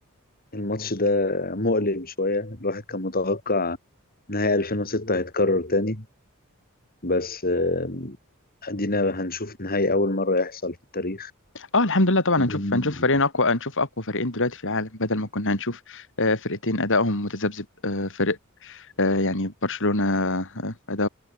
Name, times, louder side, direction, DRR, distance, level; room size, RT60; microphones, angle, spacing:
voice 1, 0.5-3.8 4.3-6.0 7.0-8.2 8.6-11.3 12.4-13.0, left 2 dB, 45° left, 5.4 m, -25 dB
voice 2, 11.5-21.1, left 2 dB, 60° left, 6.2 m, -24 dB
head